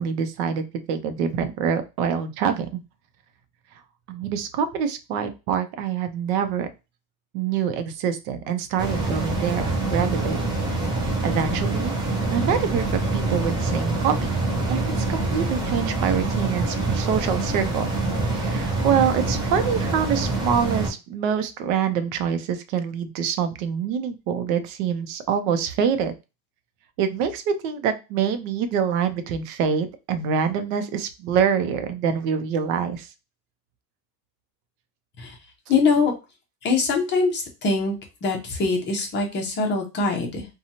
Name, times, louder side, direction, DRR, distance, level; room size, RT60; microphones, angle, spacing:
voice 1, 0.0-2.8 4.1-6.7 7.3-10.6 11.2-12.0 12.3-14.3 14.7-17.9 18.3-26.1 27.0-33.1, right 7 dB, 75° right, 9 dB, 0.7 m, -25 dB
sound 1, 8.8-20.9, right 2 dB, 10° right, 0.4 m, -25 dB
voice 2, 35.7-36.1 36.6-40.5, left 4 dB, 25° left, 2 dB, 0.7 m, -23 dB
2.9 x 2.3 x 2.6 m, 0.26 s
cardioid pair, 165°, 45 cm